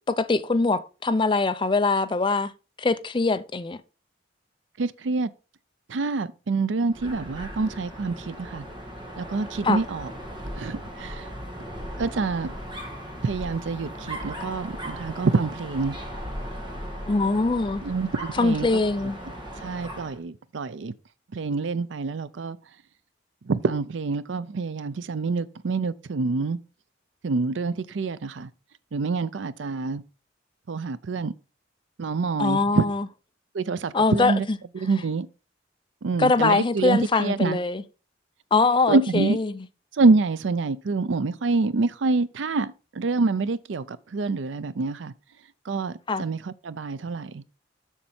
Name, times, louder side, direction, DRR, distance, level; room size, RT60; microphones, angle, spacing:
voice 1, 0.1-2.5 2.8-3.8 9.6-9.8 17.1-17.8 18.4-19.2 32.4-33.0 33.9-34.6 36.2-37.8 38.5-39.5 46.1-46.3, left 3 dB, 25° left, 0.5 m, -23 dB
voice 2, 4.8-5.3 5.9-8.6 9.2-10.1 10.5-11.3 12.0-12.5 13.2-16.0 17.8-18.7 19.6-20.9 21.3-22.6 23.5-26.6 27.2-28.5 28.9-30.0 30.7-31.3 32.0-32.9 33.5-34.5 34.7-35.3 36.0-37.6 38.9-39.4 39.9-45.1 45.7-47.4, right 3 dB, 85° right, 0.5 m, -26 dB
Dog, 6.9-20.2, equal, 25° right, 1.7 m, -37 dB
7.2 x 6.6 x 4.2 m
head